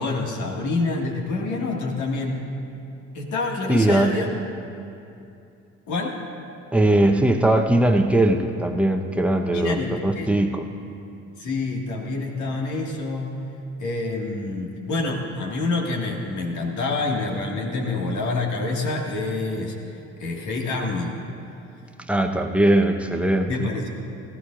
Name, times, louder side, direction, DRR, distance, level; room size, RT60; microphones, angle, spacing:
voice 1, 0.0-2.4 3.1-4.3 5.9-6.2 9.5-10.3 11.4-13.4 13.8-19.8 20.2-21.2 23.5-23.9, left 3 dB, 55° left, 0 dB, 2.0 m, -27 dB
voice 2, 3.7-4.1 6.7-10.6 22.1-23.7, right 1 dB, 5° right, 4 dB, 1.0 m, -20 dB
18.5 x 14.5 x 2.6 m, 2.6 s
hypercardioid pair, 50°, 34 cm